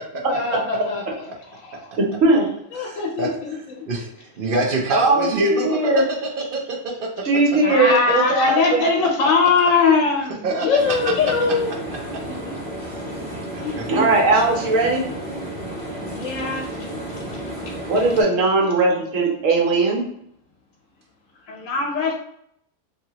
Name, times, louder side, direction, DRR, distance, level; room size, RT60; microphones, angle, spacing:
voice 1, 0.1-2.0 2.7-4.1 7.6-11.7 13.6-14.1 15.8-17.4 17.7-17.8 21.5-22.1, left 4 dB, 80° left, 0 dB, 1.0 m, -22 dB
voice 2, 2.0-2.5 4.9-6.0 7.2-8.9 13.9-15.0 17.9-20.1, right 2 dB, 85° right, 0 dB, 1.2 m, -19 dB
voice 3, 2.8-3.3 3.9-4.1 4.4-6.2 6.5-7.3 10.4-10.7 12.1-12.2 12.8-13.0 13.5-13.9, right 2 dB, 55° right, 0 dB, 0.7 m, -26 dB
sound 1, 10.7-18.2, right 1 dB, 30° right, 1.0 m, -32 dB
2.8 x 2.7 x 2.7 m, 0.70 s
omnidirectional pair, 1.3 m